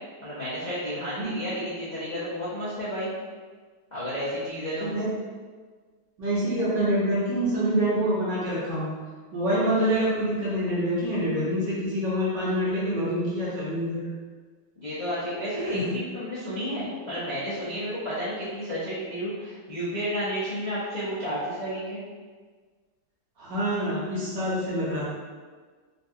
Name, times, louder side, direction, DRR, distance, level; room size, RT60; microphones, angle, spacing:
voice 1, 0.2-3.1 3.9-4.9 14.8-22.0, equal, 55° left, -12 dB, 0.4 m, -31 dB
voice 2, 6.2-8.9 9.3-14.0 15.7-15.8 23.4-25.0, equal, 60° right, -8 dB, 1.6 m, -26 dB
3.9 x 2.3 x 2.6 m, 1.5 s
omnidirectional pair, 2.2 m